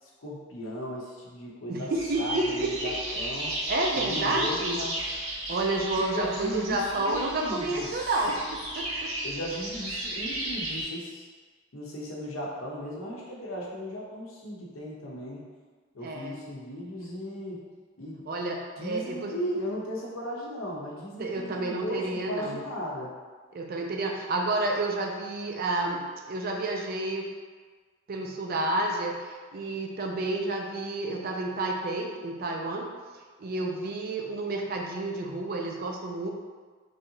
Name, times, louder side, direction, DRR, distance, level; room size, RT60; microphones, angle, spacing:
voice 1, 0.0-1.9 2.2-3.6 3.9-5.0 5.9-8.1 9.2-11.3 11.7-15.4 15.9-17.6 18.0-18.3 18.8-23.1, equal, 85° left, -4 dB, 0.7 m, -36 dB
voice 2, 1.7-3.3 3.7-4.8 5.5-9.1 16.0-16.4 18.3-19.3 21.2-22.6 23.5-27.3 28.1-32.9 33.4-36.3, right 2 dB, 45° right, 1 dB, 0.4 m, -30 dB
sound 1, 1.9-10.8, right 1 dB, 90° right, 0.7 m, -34 dB
3.2 x 2.8 x 2.7 m, 1.5 s
head